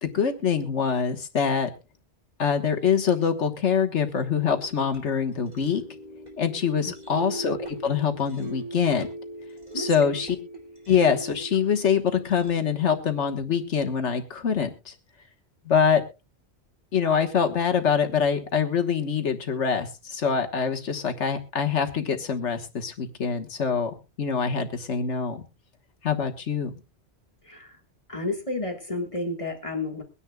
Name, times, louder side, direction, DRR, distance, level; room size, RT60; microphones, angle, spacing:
voice 1, 0.0-1.7 2.4-5.8 6.4-7.6 7.8-9.1 9.7-10.4 10.9-14.9 15.6-16.0 16.9-25.4 26.0-26.7, left 6 dB, 80° left, 1.6 m, -24 dB
sound 1, 4.4-12.9, right 2 dB, 35° right, 2.9 m, -40 dB
voice 2, 27.4-27.8 28.1-30.0, left 2 dB, 30° left, 1.7 m, -31 dB
23.0 x 9.9 x 2.3 m
omnidirectional pair, 1.2 m